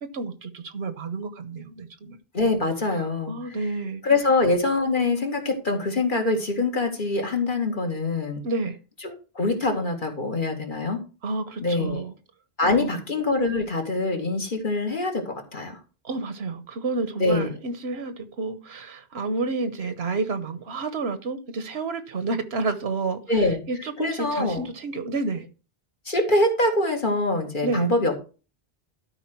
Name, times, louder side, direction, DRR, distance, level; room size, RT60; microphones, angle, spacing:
voice 1, 0.0-2.2 3.3-4.0 8.4-8.8 11.2-12.1 12.6-13.0 16.0-23.2 23.7-25.5 27.6-27.9, right 3 dB, 80° right, 1.3 m, -30 dB
voice 2, 2.3-3.3 4.0-8.4 9.0-11.0 11.6-12.0 12.6-15.8 17.2-17.5 23.3-23.6 24.0-24.6 26.1-28.2, left 2 dB, 55° left, 2.2 m, -24 dB
12.5 x 5.0 x 4.5 m
omnidirectional pair, 1.0 m